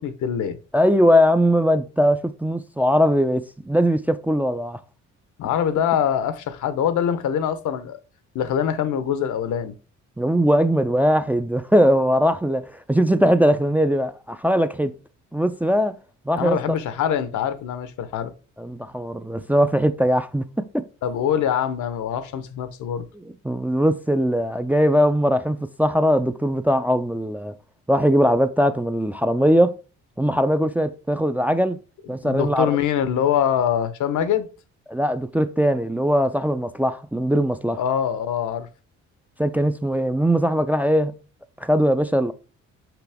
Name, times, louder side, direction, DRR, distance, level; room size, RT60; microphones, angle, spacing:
voice 1, 0.0-0.6 5.4-8.0 8.3-9.8 16.4-18.3 21.0-23.0 32.2-34.5 37.8-38.7, left 9 dB, 75° left, 0.9 m, -24 dB
voice 2, 0.7-4.8 10.2-14.9 15.3-16.0 16.3-16.6 18.6-20.8 23.1-27.5 27.9-29.7 30.2-31.8 32.1-32.8 34.9-37.8 39.4-41.1 41.6-42.3, equal, 5° right, 0.4 m, -20 dB
6.0 x 5.6 x 3.4 m
cardioid pair, 90°, 30 cm